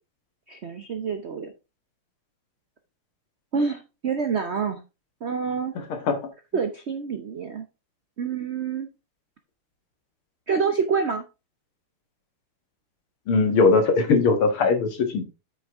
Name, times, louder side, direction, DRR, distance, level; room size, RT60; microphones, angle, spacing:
voice 1, 0.5-1.5 3.5-4.8 5.2-5.7 6.5-7.6 8.2-8.9 10.5-11.2, right 5 dB, 75° right, 7 dB, 0.6 m, -27 dB
voice 2, 13.3-15.3, left 4 dB, 75° left, 5 dB, 2.4 m, -20 dB
8.1 x 5.9 x 3.5 m, 0.27 s
omnidirectional pair, 2.4 m